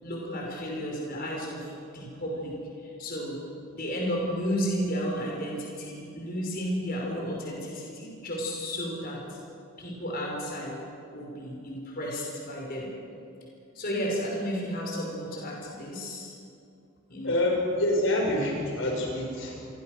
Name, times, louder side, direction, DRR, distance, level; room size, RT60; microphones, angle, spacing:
voice 1, 0.0-3.4 3.7-9.4 9.8-10.8 11.1-12.9 13.7-16.3 17.1-17.3, equal, 45° left, -1 dB, 5.6 m, -33 dB
voice 2, 17.2-19.7, left 1 dB, 65° left, 0 dB, 5.7 m, -27 dB
28.0 x 23.5 x 6.6 m, 2.6 s
head